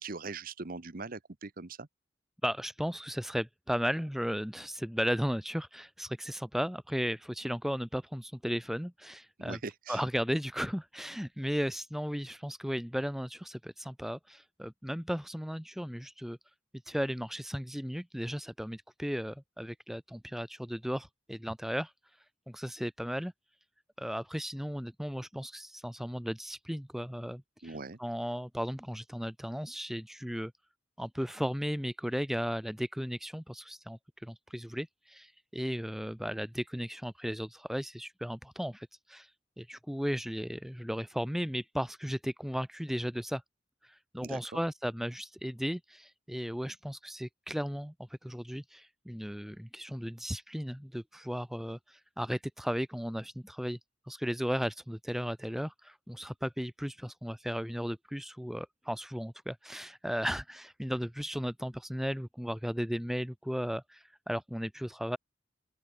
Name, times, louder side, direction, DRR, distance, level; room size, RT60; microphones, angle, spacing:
voice 1, 0.0-1.9 9.4-10.0 27.6-28.0 44.2-44.6, right 3 dB, 50° right, 1.1 m, -41 dB
voice 2, 2.4-9.6 9.9-16.4 16.9-21.9 22.5-23.3 24.0-30.5 31.0-39.3 39.6-43.4 43.8-47.9 48.2-53.8 54.1-65.2, equal, ahead, 0.8 m, -35 dB
open air
head